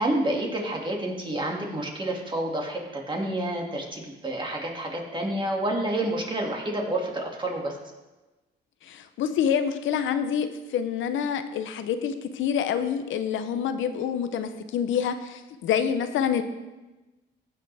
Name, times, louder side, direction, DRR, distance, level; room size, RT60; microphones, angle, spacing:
voice 1, 0.0-7.8, right 1 dB, 25° right, 0 dB, 2.2 m, -29 dB
voice 2, 8.8-16.4, left 8 dB, 80° left, 10 dB, 0.7 m, -27 dB
15.5 x 6.6 x 3.4 m, 1.1 s
cardioid pair, 90°, 20 cm